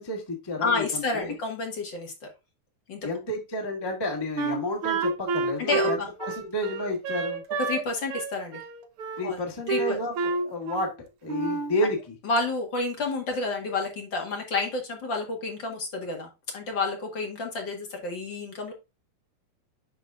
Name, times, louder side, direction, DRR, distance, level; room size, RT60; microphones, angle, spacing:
voice 1, 0.0-1.2 3.0-7.4 9.2-10.9 11.2-12.1, left 1 dB, 25° left, 1 dB, 0.5 m, -31 dB
voice 2, 0.6-2.1 2.9-3.1 5.6-6.1 7.6-8.6 9.2-9.4 9.7-10.0 12.2-18.7, left 3 dB, 45° left, 2 dB, 1.8 m, -30 dB
Wind instrument woodwind instrument, 4.4-7.8 8.1-9.2 9.7-11.0 11.3-11.8, right 4 dB, 65° right, 1.5 m, -29 dB
11.0 x 4.0 x 2.4 m, 0.26 s
omnidirectional pair, 3.6 m